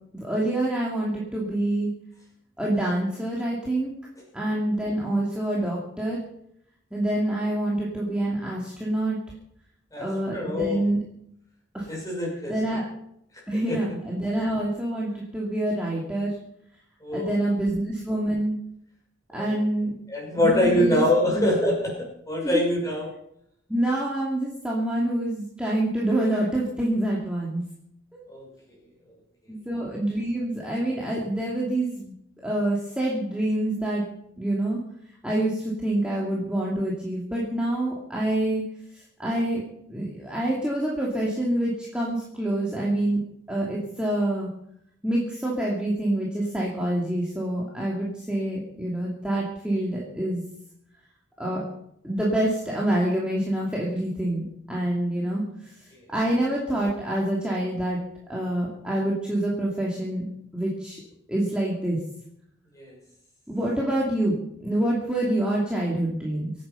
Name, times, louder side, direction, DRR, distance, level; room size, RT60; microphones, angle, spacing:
voice 1, 0.2-1.9 2.6-3.9 4.3-6.2 6.9-9.2 10.0-11.0 11.7-11.9 12.5-12.9 13.5-16.3 17.1-18.6 19.3-19.9 20.3-21.0 21.3-21.5 22.4-22.6 23.7-27.6 28.1-28.2 29.5-32.1 32.4-34.0 34.4-34.8 35.2-38.6 39.2-39.6 39.9-43.2 43.5-44.5 45.0-50.4 51.4-51.6 52.0-55.4 56.1-58.0 58.3-60.2 60.5-61.0 61.3-62.0 63.5-66.5, right 1 dB, 5° right, -5 dB, 2.5 m, -26 dB
voice 2, 10.3-10.9 11.9-12.5 13.5-13.8 17.0-17.3 19.3-19.5 20.1-23.1 28.3-28.5 62.7-63.0, left 1 dB, 15° left, -2 dB, 5.8 m, -24 dB
24.5 x 9.3 x 5.6 m, 0.75 s
head